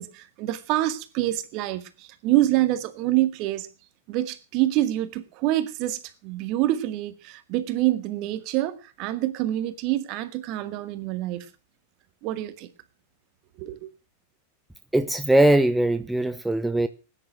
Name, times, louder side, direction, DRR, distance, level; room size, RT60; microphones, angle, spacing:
voice 1, 0.0-3.7 4.1-11.5 12.2-12.7 13.6-13.9, right 15 dB, 40° right, 1.9 m, -26 dB
voice 2, 14.9-16.9, right 1 dB, 5° right, 0.8 m, -20 dB
18.5 x 9.9 x 6.2 m
figure-of-eight pair, 90°, 0 cm